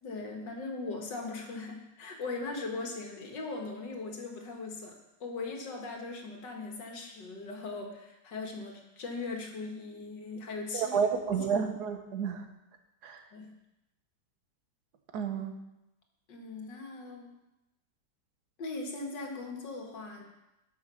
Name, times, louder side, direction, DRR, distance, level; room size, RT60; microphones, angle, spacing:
voice 1, 0.0-4.9 5.2-11.0 13.3-13.5 16.3-17.3 18.6-20.2, left 3 dB, 85° left, 2 dB, 2.2 m, -39 dB
voice 2, 10.7-12.4 13.0-13.2 15.1-15.6, right 6 dB, 65° right, 6 dB, 1.5 m, -30 dB
12.5 x 6.2 x 5.8 m, 0.94 s
omnidirectional pair, 1.9 m